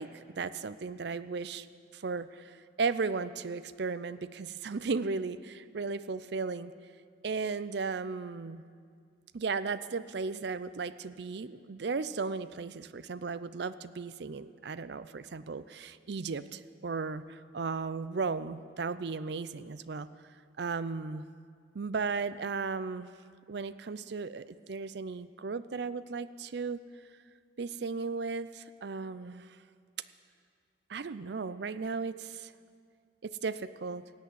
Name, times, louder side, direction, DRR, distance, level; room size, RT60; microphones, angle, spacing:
voice 1, 0.0-1.7 1.9-6.7 7.2-8.6 9.3-20.1 20.6-21.3 21.7-23.1 23.5-26.8 27.6-29.6 30.9-32.5 33.2-34.0, right 4 dB, 60° right, 14 dB, 0.5 m, -35 dB
17.0 x 8.4 x 8.2 m, 2.1 s
head